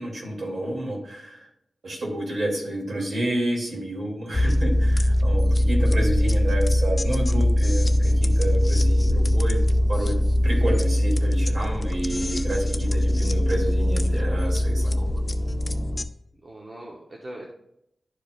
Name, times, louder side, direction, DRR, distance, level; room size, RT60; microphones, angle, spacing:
voice 1, 0.0-1.5 1.8-9.6 9.9-15.1, right 1 dB, 70° right, -3 dB, 2.8 m, -30 dB
sound 1, 4.3-16.0, left 1 dB, 30° left, 0.5 m, -21 dB
voice 2, 16.4-17.5, right 1 dB, 40° right, -2 dB, 1.1 m, -41 dB
11.5 x 4.8 x 2.5 m, 0.75 s
wide cardioid pair, 110°, 0 cm